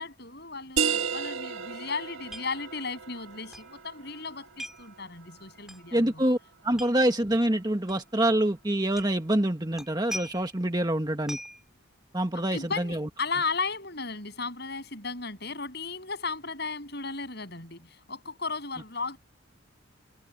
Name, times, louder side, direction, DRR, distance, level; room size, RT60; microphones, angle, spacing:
voice 1, 0.0-6.2 6.7-6.8 12.5-19.2, left 4 dB, 55° left, 7.5 m, -35 dB
sound 1, 0.8-6.1, right 6 dB, 85° right, 1.5 m, -34 dB
sound 2, 2.3-2.5 2.8-2.9 3.5-3.7 4.6-4.9 5.7-5.8 6.7-6.9 7.9-8.0 8.9-9.2 9.7-10.6 11.3-11.6, equal, ahead, 4.9 m, -40 dB
voice 2, 5.9-6.4 6.6-11.4 12.1-13.1, right 1 dB, 20° right, 1.6 m, -26 dB
head